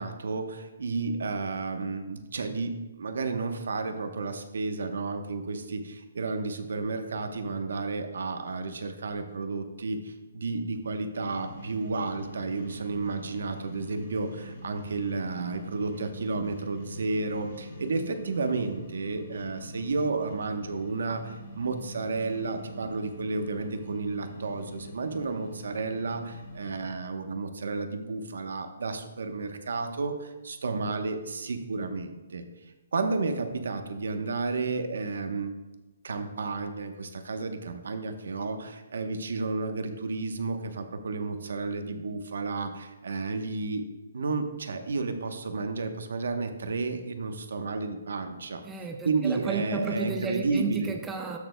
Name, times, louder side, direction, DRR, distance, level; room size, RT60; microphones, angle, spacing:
voice 1, 0.0-32.5 32.9-35.5 36.0-43.9 44.1-48.6 49.0-50.9, right 3 dB, 70° right, 7 dB, 0.9 m, -32 dB
sound 1, 11.3-26.9, equal, 40° left, 2.2 m, -44 dB
voice 2, 48.6-51.4, right 4 dB, 5° right, 3 dB, 0.3 m, -32 dB
13.0 x 6.7 x 2.2 m, 1.1 s
hypercardioid pair, 175°, 0 cm